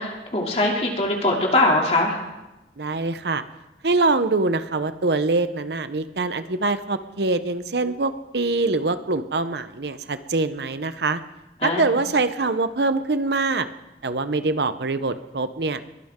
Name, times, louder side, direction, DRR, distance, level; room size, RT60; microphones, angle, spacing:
voice 1, 0.0-2.2 11.6-11.8, left 2 dB, 35° left, -1 dB, 2.8 m, -21 dB
voice 2, 2.8-3.4 3.8-11.2 11.6-13.7 14.0-15.8, right 3 dB, 70° right, 11 dB, 0.8 m, -24 dB
22.0 x 16.0 x 3.7 m, 1.0 s
head